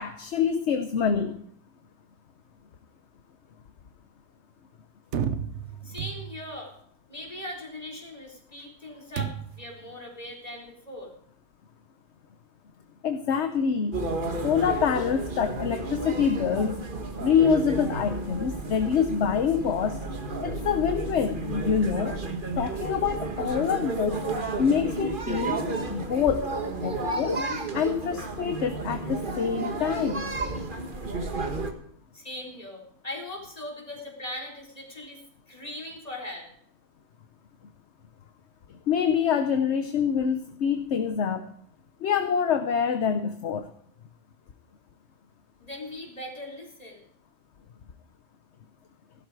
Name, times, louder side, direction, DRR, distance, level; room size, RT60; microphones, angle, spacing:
voice 1, 0.0-1.4 13.0-14.0 14.4-16.8 17.2-20.0 20.4-22.1 22.6-24.2 24.6-25.6 25.9-26.5 26.8-27.4 27.7-30.3 38.9-41.5 42.0-43.7, left 7 dB, 60° left, 8 dB, 1.1 m, -26 dB
sound 1, 5.1-6.6 9.2-9.7, right 8 dB, 65° right, 1.1 m, -32 dB
voice 2, 5.8-6.7 7.1-11.1 32.1-35.2 35.5-36.5 45.6-47.0, left 1 dB, 30° left, -1 dB, 3.9 m, -39 dB
sound 2, 13.9-31.7, right 2 dB, 40° right, 1.5 m, -32 dB
14.5 x 12.5 x 4.8 m, 0.65 s
omnidirectional pair, 1.3 m